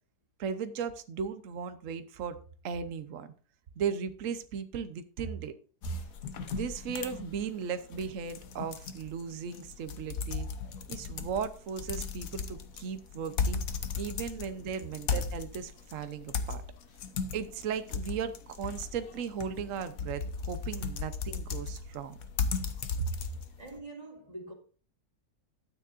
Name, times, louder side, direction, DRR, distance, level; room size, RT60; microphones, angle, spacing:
voice 1, 0.4-2.4 2.6-3.3 3.8-5.5 6.5-10.5 10.9-13.6 14.0-16.6 17.3-22.2 23.0-23.1, right 7 dB, 60° right, 1.2 m, -36 dB
sound 1, 5.8-23.7, left 5 dB, 65° left, 1.3 m, -36 dB
voice 2, 23.6-24.5, right 3 dB, 25° right, 2.4 m, -41 dB
13.0 x 9.3 x 2.5 m
omnidirectional pair, 1.6 m